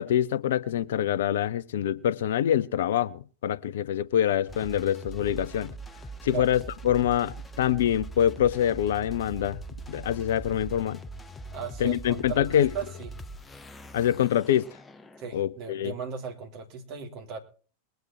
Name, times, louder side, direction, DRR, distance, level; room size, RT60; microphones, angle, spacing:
voice 1, 0.0-5.7 6.2-9.6 9.9-11.0 11.8-12.7 13.9-14.7 15.3-15.9, left 10 dB, 60° left, 0.5 m, -25 dB
sound 1, 4.5-15.6, right 2 dB, 15° left, 0.8 m, -42 dB
voice 2, 11.5-13.1 15.2-17.4, right 6 dB, 40° right, 3.2 m, -37 dB
21.5 x 8.0 x 4.5 m
figure-of-eight pair, 90°, 0 cm